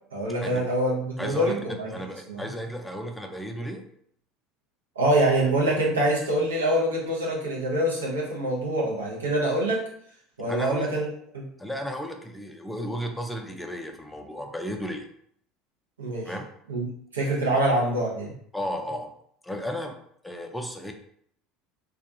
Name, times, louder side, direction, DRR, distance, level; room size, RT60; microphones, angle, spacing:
voice 1, 0.1-1.9 2.3-2.5 5.0-9.8 10.4-11.5 16.0-16.3 16.7-16.8 17.1-18.3, right 1 dB, 85° right, -4 dB, 0.7 m, -25 dB
voice 2, 1.2-3.8 10.5-10.9 11.6-15.0 16.2-16.5 18.5-19.1 19.4-20.0 20.2-20.9, equal, 5° left, 4 dB, 0.4 m, -34 dB
2.4 x 2.3 x 2.6 m, 0.67 s
hypercardioid pair, 75°, 0 cm